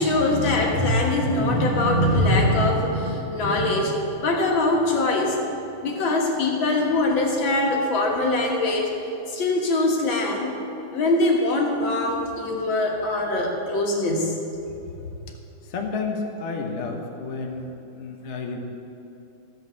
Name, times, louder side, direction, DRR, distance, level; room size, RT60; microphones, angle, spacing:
voice 1, 0.0-5.4 5.8-8.9 9.3-10.5 10.9-14.3, left 2 dB, 65° left, 0 dB, 2.2 m, -22 dB
voice 2, 15.6-18.6, left 4 dB, 45° left, 2 dB, 0.9 m, -31 dB
13.5 x 6.1 x 6.9 m, 2.9 s
omnidirectional pair, 2.4 m